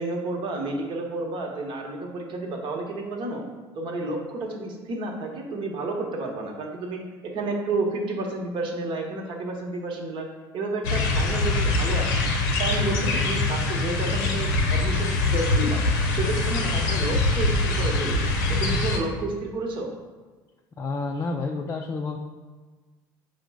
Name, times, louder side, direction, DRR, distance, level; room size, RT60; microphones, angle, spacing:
voice 1, 0.0-3.4 3.7-7.0 7.3-10.3 10.5-12.3 12.6-15.8 16.1-19.9, right 2 dB, 55° right, 1 dB, 0.9 m, -31 dB
sound 1, 10.8-19.0, left 2 dB, 85° left, 0.7 m, -23 dB
voice 2, 20.8-22.2, left 3 dB, 30° left, 1 dB, 0.4 m, -29 dB
4.9 x 2.1 x 4.7 m, 1.3 s
supercardioid pair, 90°, 10 cm